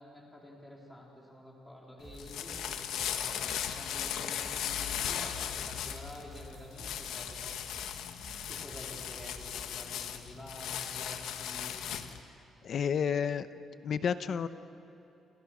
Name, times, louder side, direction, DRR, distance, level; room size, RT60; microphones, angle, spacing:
voice 1, 0.0-7.6 8.4-11.8, left 1 dB, 10° left, -2 dB, 4.1 m, -49 dB
sound 1, 2.0-12.2, left 9 dB, 80° left, 1.6 m, -37 dB
sound 2, 2.0-9.6, right 3 dB, 25° right, 3.0 m, -52 dB
voice 2, 12.6-13.5 13.8-14.5, left 7 dB, 45° left, 12 dB, 0.8 m, -30 dB
28.5 x 27.5 x 6.2 m, 3.0 s
cardioid pair, 165°, 0 cm